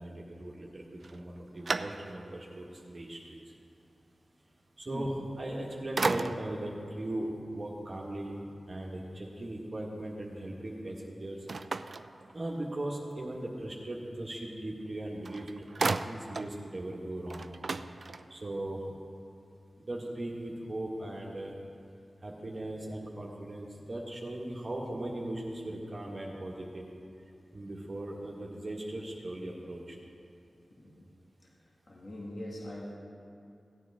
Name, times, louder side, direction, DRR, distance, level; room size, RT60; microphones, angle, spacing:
voice 1, 0.0-3.4 4.8-7.3 7.5-8.4 8.7-11.4 12.3-15.5 15.8-17.5 18.3-18.8 19.8-21.5 22.2-26.8 27.5-30.0, right 1 dB, 45° right, -2 dB, 1.6 m, -38 dB
sound 1, 1.0-2.4 3.0-3.1 5.3-5.6 6.0-6.7 11.5-12.8 14.9-15.0 15.2-16.6 16.9-17.0 17.3-18.5, right 4 dB, 65° right, 0.3 m, -35 dB
voice 2, 30.7-31.0 31.9-33.0, left 1 dB, 55° left, -3 dB, 1.9 m, -42 dB
17.5 x 9.2 x 3.6 m, 2.6 s
cardioid pair, 50°, 0 cm